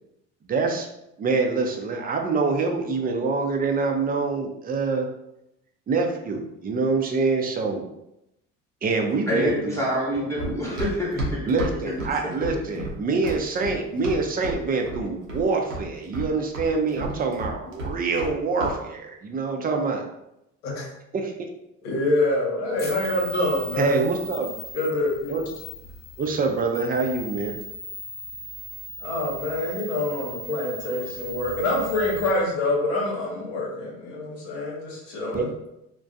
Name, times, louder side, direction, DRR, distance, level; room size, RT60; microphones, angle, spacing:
voice 1, 0.5-0.9 1.2-5.1 5.9-7.8 8.8-9.7 11.5-20.0 21.1-21.3 23.8-24.5 25.3-25.4 26.2-27.5 35.3-35.5, right 4 dB, 25° right, 3 dB, 0.5 m, -25 dB
voice 2, 9.3-11.5 11.8-11.9 12.4-12.5, equal, 10° left, -5 dB, 1.0 m, -26 dB
Run, 10.4-14.6 14.9-15.5 15.7-18.3 18.6-18.8, right 1 dB, 90° right, 0.7 m, -32 dB
voice 3, 21.8-24.1 24.7-25.3 29.0-35.7, left 2 dB, 75° left, -3 dB, 0.9 m, -26 dB
sound 1, 22.8-32.3, equal, 30° left, 0.5 m, -39 dB
2.4 x 2.2 x 2.6 m, 0.86 s
hypercardioid pair, 60°, 36 cm